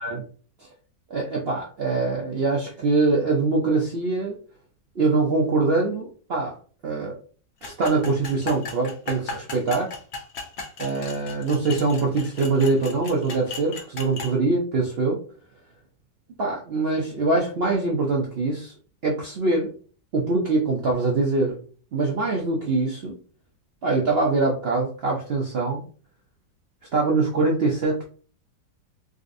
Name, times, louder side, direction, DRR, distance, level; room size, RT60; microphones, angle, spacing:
voice 1, 1.1-4.4 5.0-6.6 6.8-7.2 7.6-9.9 10.8-15.2 16.4-18.7 19.0-19.7 20.1-21.6 21.9-23.1 23.8-25.8 26.9-28.1, right 3 dB, 90° right, -1 dB, 0.5 m, -23 dB
sound 1, 7.6-14.3, left 4 dB, 65° left, 0.7 m, -36 dB
3.9 x 2.6 x 2.5 m, 0.40 s
omnidirectional pair, 1.9 m